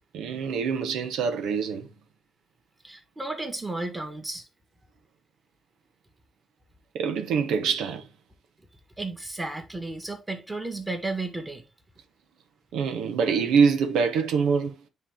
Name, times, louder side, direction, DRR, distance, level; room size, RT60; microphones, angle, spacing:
voice 1, 0.1-1.9 6.9-8.0 12.7-14.8, right 6 dB, 85° right, 1.4 m, -24 dB
voice 2, 2.8-4.4 9.0-11.6, right 2 dB, 15° right, 2.1 m, -33 dB
9.9 x 3.6 x 3.6 m
cardioid pair, 90°, 0 cm